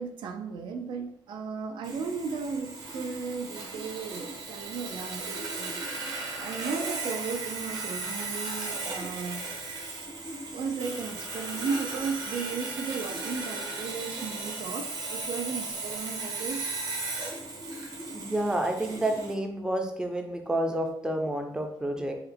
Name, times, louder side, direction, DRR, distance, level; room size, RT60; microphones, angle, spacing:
voice 1, 0.0-5.7 6.4-9.4 10.5-16.7, right 5 dB, 80° right, 5 dB, 0.4 m, -35 dB
Sawing, 1.8-19.3, right 3 dB, 50° right, 0.8 m, -36 dB
voice 2, 18.1-22.2, right 1 dB, 10° right, 4 dB, 0.4 m, -29 dB
4.6 x 2.1 x 3.3 m, 0.72 s
wide cardioid pair, 155°, 8 cm